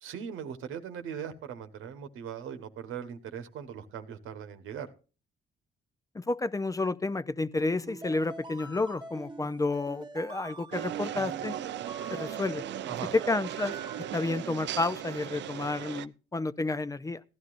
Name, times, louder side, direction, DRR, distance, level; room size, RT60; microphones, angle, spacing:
voice 1, 0.0-4.9 12.9-13.1, right 8 dB, 85° right, 1.2 m, -39 dB
voice 2, 6.1-11.5 12.1-12.6 13.3-13.7 14.1-17.2, left 3 dB, 15° left, 0.5 m, -31 dB
sound 1, 7.6-14.4, right 2 dB, 25° right, 1.1 m, -45 dB
sound 2, 10.7-16.1, right 11 dB, 65° right, 0.4 m, -37 dB
16.0 x 11.5 x 2.5 m
cardioid pair, 90°, 20 cm